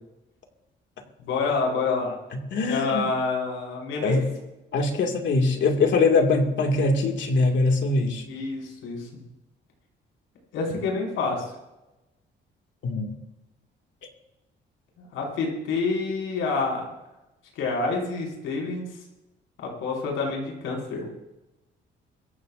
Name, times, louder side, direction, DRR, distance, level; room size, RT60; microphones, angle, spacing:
voice 1, 1.2-2.2 2.7-4.2 8.2-9.2 10.5-11.4 15.0-16.9 17.5-18.9 19.6-21.1, left 4 dB, 90° left, -1 dB, 5.8 m, -28 dB
voice 2, 2.5-3.0 4.0-4.2 4.7-8.2 12.8-13.1, left 3 dB, 70° left, 2 dB, 2.4 m, -22 dB
23.5 x 15.0 x 2.7 m, 0.96 s
cardioid pair, 90°, 20 cm